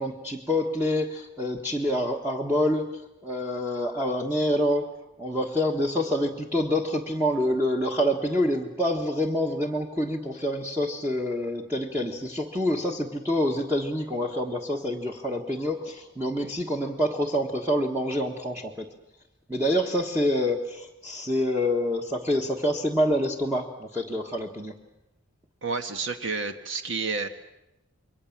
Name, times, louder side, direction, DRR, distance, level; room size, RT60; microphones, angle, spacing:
voice 1, 0.0-4.9 5.2-18.9 19.5-24.7, left 1 dB, 10° right, 1 dB, 1.4 m, -27 dB
voice 2, 25.6-27.3, right 4 dB, 65° right, 7 dB, 1.4 m, -30 dB
27.5 x 23.0 x 7.3 m, 0.92 s
head